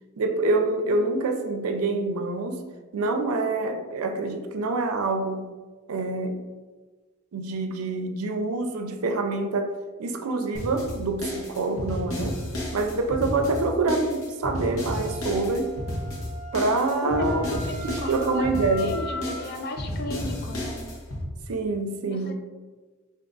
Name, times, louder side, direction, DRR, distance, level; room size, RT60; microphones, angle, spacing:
voice 1, 0.2-2.6 2.9-5.5 5.9-6.4 7.3-9.7 10.0-12.4 12.7-15.7 16.5-17.5 17.8-18.9 21.5-22.3, right 3 dB, 90° right, 5 dB, 0.5 m, -26 dB
sound 1, 10.5-21.2, left 1 dB, 75° left, 1.0 m, -33 dB
Wind instrument woodwind instrument, 14.9-19.6, left 1 dB, 10° left, 1.3 m, -39 dB
voice 2, 17.0-20.8 22.1-22.3, left 2 dB, 45° left, 4 dB, 0.4 m, -35 dB
3.5 x 2.6 x 3.9 m, 1.4 s
head